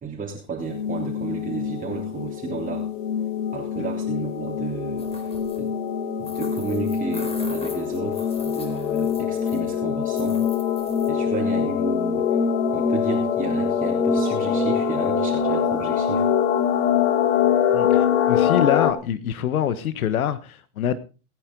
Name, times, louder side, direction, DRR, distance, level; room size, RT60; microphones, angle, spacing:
voice 1, 0.0-2.9 3.5-5.7 6.2-10.4 11.1-12.3 12.7-16.3, right 5 dB, 20° right, -2 dB, 3.4 m, -33 dB
sound 1, 0.6-18.9, left 7 dB, 65° left, 2.4 m, -23 dB
sound 2, 5.0-5.7 6.2-9.8 10.1-11.1, left 2 dB, 15° left, 4.5 m, -42 dB
voice 2, 17.7-21.0, left 9 dB, 80° left, 14 dB, 1.3 m, -25 dB
20.5 x 9.6 x 3.9 m, 0.33 s
hypercardioid pair, 115°, 42 cm